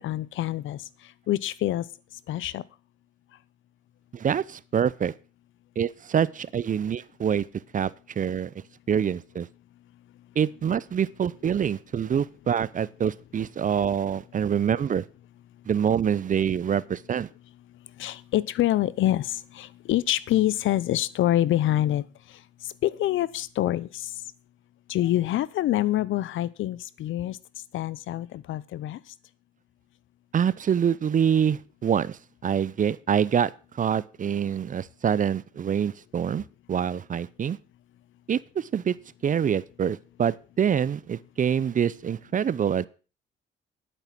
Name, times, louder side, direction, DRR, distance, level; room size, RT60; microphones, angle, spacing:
voice 1, 0.0-1.9 2.3-2.6 18.0-24.1 24.9-27.4 27.7-29.1, left 14 dB, 75° left, 20 dB, 0.7 m, -26 dB
voice 2, 4.1-5.1 5.8-7.5 7.7-8.5 8.9-9.5 10.4-15.0 15.7-17.3 30.3-37.6 38.3-39.0 39.2-42.9, right 8 dB, 40° right, 20 dB, 0.6 m, -26 dB
10.5 x 8.9 x 6.0 m, 0.35 s
cardioid pair, 90°, 20 cm